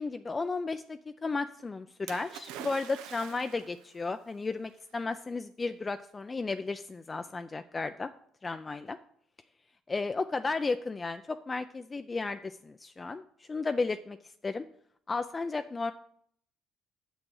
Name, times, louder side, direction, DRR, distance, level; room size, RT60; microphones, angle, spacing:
voice 1, 0.0-8.1 8.4-9.0 9.9-14.2 14.4-14.7 15.1-15.9, left 3 dB, 25° left, 9 dB, 0.4 m, -34 dB
Splash splatter, 2.1-3.9 4.8-4.9, right 10 dB, 90° right, 0.5 m, -44 dB
6.5 x 6.1 x 6.4 m, 0.65 s
supercardioid pair, 85°, 0 cm